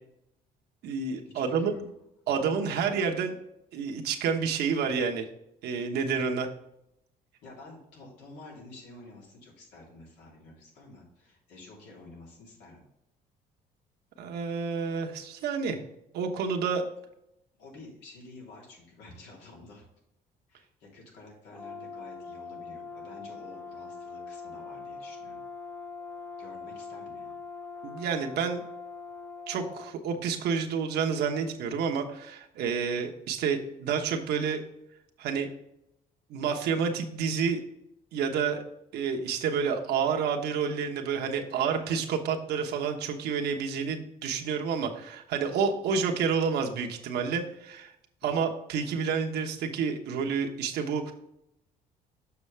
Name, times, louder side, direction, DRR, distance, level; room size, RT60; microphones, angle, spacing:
voice 1, 0.8-1.9 2.3-3.4 3.7-5.3 5.6-6.5 14.2-15.8 16.1-16.9 27.8-28.6 29.5-34.6 35.2-35.5 36.3-37.6 38.1-38.6 38.9-47.9 48.2-51.1, right 6 dB, 75° right, 3 dB, 1.1 m, -29 dB
voice 2, 1.3-1.8 7.4-12.9 17.6-19.8 20.5-25.4 26.4-27.3 41.5-41.9 48.2-48.4, left 2 dB, 85° left, -2 dB, 3.0 m, -50 dB
Brass instrument, 21.5-29.9, left 4 dB, 10° left, 0.8 m, -42 dB
7.0 x 6.1 x 3.3 m, 0.81 s
cardioid pair, 110°, 17 cm